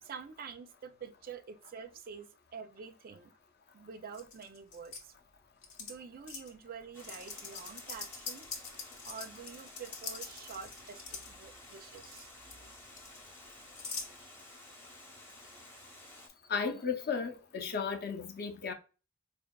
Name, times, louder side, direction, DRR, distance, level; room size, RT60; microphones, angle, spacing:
voice 1, 0.0-3.3 3.7-5.1 5.8-8.6 9.0-12.3, right 6 dB, 40° right, 0.4 m, -47 dB
sound 1, 4.1-5.0 5.6-5.9 6.3-6.5 7.0-11.3 11.7-12.2 12.5-14.1, left 5 dB, 80° left, 1.0 m, -43 dB
Water, 6.9-16.3, left 1 dB, 10° left, 0.7 m, -53 dB
voice 2, 16.5-18.7, left 5 dB, 45° left, 0.6 m, -34 dB
4.5 x 2.7 x 2.2 m
head